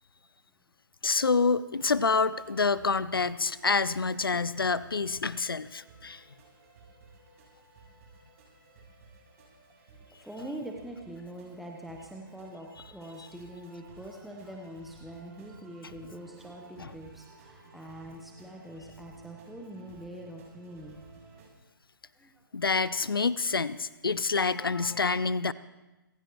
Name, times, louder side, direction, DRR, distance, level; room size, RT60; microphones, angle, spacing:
voice 1, 1.0-6.2 16.8-16.9 22.5-25.5, left 4 dB, 80° left, 17 dB, 0.8 m, -27 dB
sound 1, 1.7-21.5, right 4 dB, 40° right, 7.1 m, -56 dB
voice 2, 9.9-21.0 22.1-22.4, right 1 dB, ahead, -1 dB, 1.2 m, -44 dB
27.5 x 16.0 x 3.2 m, 1.0 s
figure-of-eight pair, 135°, 12 cm